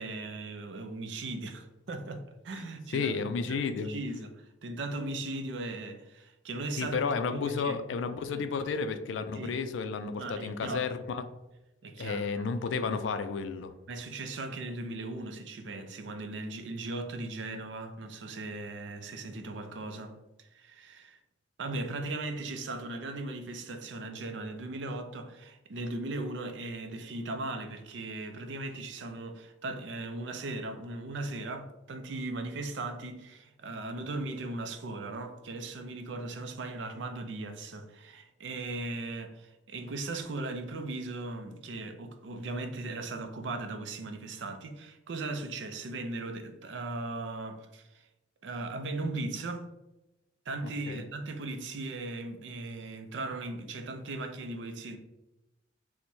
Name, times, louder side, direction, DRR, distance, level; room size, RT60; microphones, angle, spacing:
voice 1, 0.0-3.2 3.5-3.6 3.8-7.0 7.3-7.8 8.3-8.4 9.3-9.6 10.2-10.9 11.8-12.5 13.9-21.2 21.6-48.1 48.4-49.7 50.5-55.0, right 2 dB, 75° right, 0.4 m, -38 dB
voice 2, 2.9-3.9 6.8-11.2 12.0-13.7 50.6-51.0, left 5 dB, 90° left, 0.3 m, -32 dB
4.4 x 2.1 x 2.6 m
head